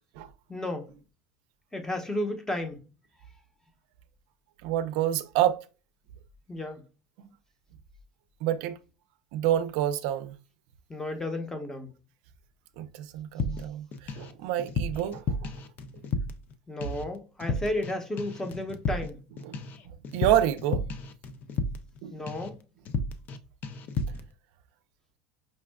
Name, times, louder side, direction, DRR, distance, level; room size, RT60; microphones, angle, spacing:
voice 1, 0.5-0.9 1.7-2.8 6.5-6.8 10.9-11.9 16.7-19.2 22.1-22.6, left 1 dB, 10° left, 0.8 m, -33 dB
voice 2, 4.6-5.6 8.4-8.8 9.3-10.3 12.8-15.5 19.4-20.8 22.0-22.2, right 11 dB, 70° right, 0.4 m, -28 dB
sound 1, 13.4-14.3 14.6-16.5 16.8-17.1 17.4-17.9 18.2-22.0 22.3-22.6 22.9-23.4 23.6-24.3, left 3 dB, 40° left, 0.4 m, -32 dB
5.3 x 2.3 x 2.2 m
supercardioid pair, 100°, 4 cm